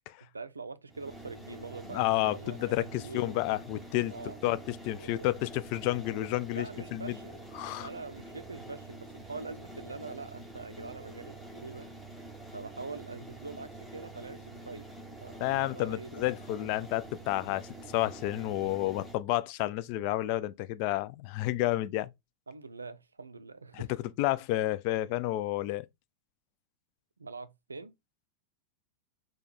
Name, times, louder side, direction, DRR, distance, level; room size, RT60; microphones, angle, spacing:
voice 1, 0.2-3.3 4.1-4.4 5.0-5.3 6.5-11.9 12.5-14.9 15.2-16.2 22.5-23.9 27.2-27.9, right 4 dB, 75° right, 0.4 m, -44 dB
sound 1, 0.9-19.2, right 2 dB, 5° left, 1.2 m, -47 dB
voice 2, 1.9-4.1 4.4-6.7 6.9-7.2 7.6-7.9 15.4-22.1 23.7-23.9 24.2-25.8, left 16 dB, 45° left, 0.3 m, -30 dB
4.4 x 2.2 x 4.0 m
figure-of-eight pair, 90°, 0 cm